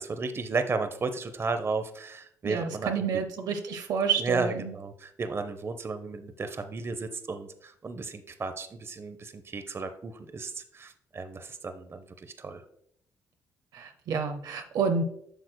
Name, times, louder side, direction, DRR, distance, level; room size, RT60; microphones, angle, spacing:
voice 1, 0.0-3.2 4.2-12.6, right 4 dB, 40° right, 9 dB, 0.7 m, -34 dB
voice 2, 2.4-4.7 13.7-15.0, right 6 dB, 75° right, 5 dB, 0.6 m, -29 dB
7.9 x 6.1 x 2.2 m, 0.68 s
supercardioid pair, 60°, 7 cm